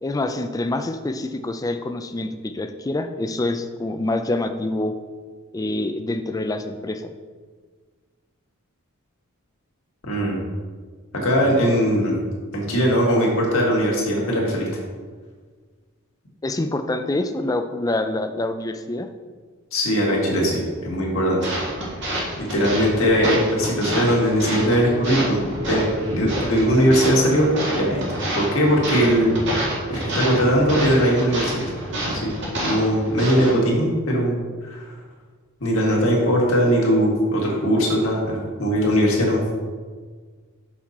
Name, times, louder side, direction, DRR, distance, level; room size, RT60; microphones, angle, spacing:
voice 1, 0.0-4.9 5.5-7.1 16.4-19.1, left 2 dB, 15° left, 8 dB, 0.3 m, -26 dB
voice 2, 10.0-10.4 11.1-12.1 12.5-14.7 19.7-21.4 22.4-27.5 27.8-28.0 28.3-29.3 29.9-31.6 32.0-32.3 32.6-34.3 34.6-34.9 35.6-39.4, equal, 65° left, -2 dB, 1.8 m, -20 dB
sound 1, 21.4-33.5, right 1 dB, 55° right, 1.9 m, -28 dB
6.3 x 5.8 x 4.2 m, 1.5 s
head